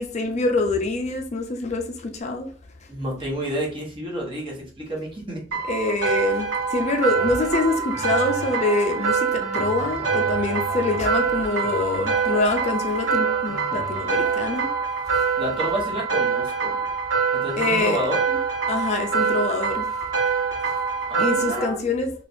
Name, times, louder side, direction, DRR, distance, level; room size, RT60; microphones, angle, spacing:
voice 1, 0.0-2.5 5.7-14.7 15.1-15.3 17.6-18.4 18.7-19.9 21.2-22.1, left 3 dB, 35° left, 0.4 m, -25 dB
voice 2, 2.9-5.4 15.4-16.8 17.3-18.2 21.1-21.8, equal, 30° right, 1.0 m, -29 dB
sound 1, 5.5-21.6, right 5 dB, 75° right, 1.2 m, -25 dB
sound 2, 7.2-16.9 17.6-17.7, right 2 dB, 10° right, 0.6 m, -38 dB
3.2 x 3.0 x 2.5 m
head